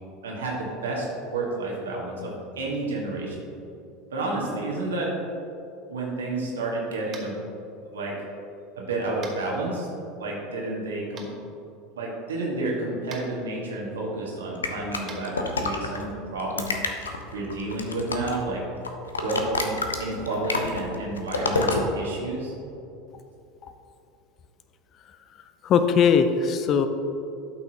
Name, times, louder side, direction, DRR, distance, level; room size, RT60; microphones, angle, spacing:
voice 1, 0.2-1.1 1.3-3.5 4.1-5.1 5.9-7.4 7.9-8.2 8.8-9.9 10.2-11.3 11.9-16.8 17.3-18.6 19.2-22.5, right 2 dB, 70° right, -2 dB, 1.6 m, -30 dB
Tap, 7.1-7.4 9.2-9.4 11.2-11.3 13.1-13.2 15.0-15.2, right 5 dB, 35° right, 1.2 m, -41 dB
sound 1, 14.6-16.0 16.4-18.5 18.8-21.8, left 3 dB, 75° left, 0.6 m, -28 dB
voice 2, 25.6-26.9, left 6 dB, 40° left, 9 dB, 0.5 m, -20 dB
11.5 x 5.8 x 2.9 m, 2.7 s
figure-of-eight pair, 75°, 0 cm